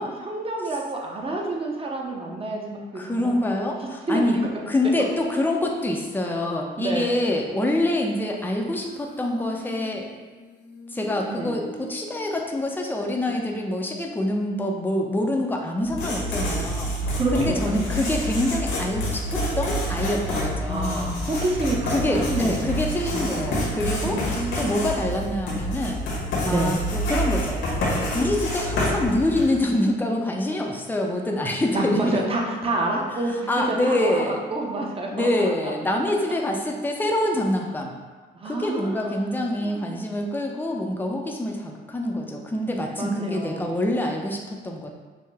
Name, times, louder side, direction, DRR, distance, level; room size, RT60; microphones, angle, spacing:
voice 1, 0.0-3.5 4.1-4.5 6.2-6.4 6.8-7.2 11.3-11.5 17.1-17.8 20.7-21.9 22.3-23.7 24.3-25.1 26.4-26.7 31.7-35.7 38.3-39.3 39.6-40.0 43.0-43.7, right 2 dB, 30° right, 0 dB, 0.8 m, -28 dB
voice 2, 2.9-4.4 4.7-10.1 10.9-21.1 21.9-24.2 24.6-26.0 26.5-27.6 28.1-32.2 33.5-34.4 35.1-37.9 38.4-44.9, left 1 dB, 10° left, 1 dB, 0.5 m, -26 dB
Human voice, 8.8-13.7, left 2 dB, 65° left, 0.8 m, -43 dB
Writing, 15.8-29.7, equal, 85° left, 1.4 m, -27 dB
5.5 x 2.1 x 3.3 m, 1.3 s
cardioid pair, 90°, 20 cm